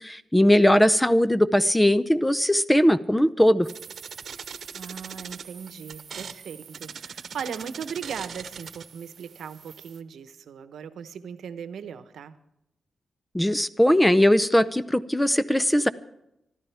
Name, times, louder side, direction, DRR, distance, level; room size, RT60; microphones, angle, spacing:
voice 1, 0.0-3.7 13.3-15.9, left 1 dB, 5° left, 14 dB, 0.5 m, -20 dB
sound 1, 3.6-10.0, right 6 dB, 65° right, 1.0 m, -41 dB
voice 2, 4.7-12.3, right 7 dB, 90° right, 11 dB, 1.0 m, -38 dB
25.5 x 13.0 x 3.5 m, 0.83 s
wide cardioid pair, 115°, 0 cm